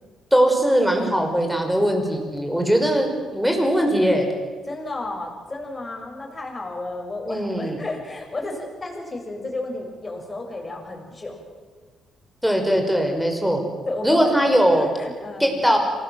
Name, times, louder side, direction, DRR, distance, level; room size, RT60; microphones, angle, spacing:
voice 1, 0.3-3.1 3.3-4.3 7.2-7.8 12.4-13.6 14.0-14.9 15.4-15.8, equal, ahead, 3 dB, 5.8 m, -20 dB
voice 2, 4.6-11.4 13.9-15.7, left 2 dB, 25° left, 2 dB, 7.1 m, -32 dB
26.5 x 19.5 x 7.8 m, 1.4 s
cardioid pair, 90°, 0 cm